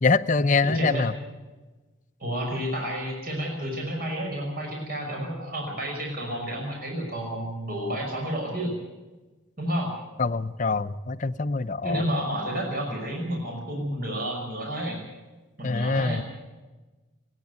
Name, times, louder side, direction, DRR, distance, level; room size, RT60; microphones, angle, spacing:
voice 1, 0.0-1.1 10.2-12.0 15.6-16.2, left 4 dB, 40° left, 11 dB, 0.6 m, -24 dB
voice 2, 0.6-1.0 2.2-8.7 9.6-9.9 11.8-15.0 15.6-16.2, equal, 45° right, 0 dB, 5.7 m, -30 dB
29.0 x 9.9 x 9.5 m, 1.2 s
head